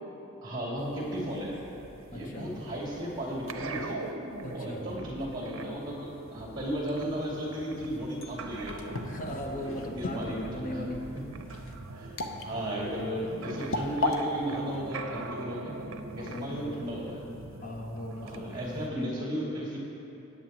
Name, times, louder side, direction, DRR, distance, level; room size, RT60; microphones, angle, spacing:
voice 1, 0.4-1.6 2.1-4.0 4.5-9.0 10.0-10.8 11.9-12.1 12.4-15.8 16.2-17.3 18.2-19.8, equal, 20° right, -5 dB, 2.5 m, -35 dB
sound 1, 0.8-18.9, right 3 dB, 70° right, 0.6 m, -43 dB
voice 2, 2.1-2.6 4.4-4.9 9.0-11.2 16.2-16.8 17.6-19.2, left 1 dB, 40° left, 2 dB, 0.8 m, -38 dB
sound 2, 7.9-14.2, left 2 dB, 75° left, 0.7 m, -36 dB
16.5 x 8.6 x 3.0 m, 2.9 s
head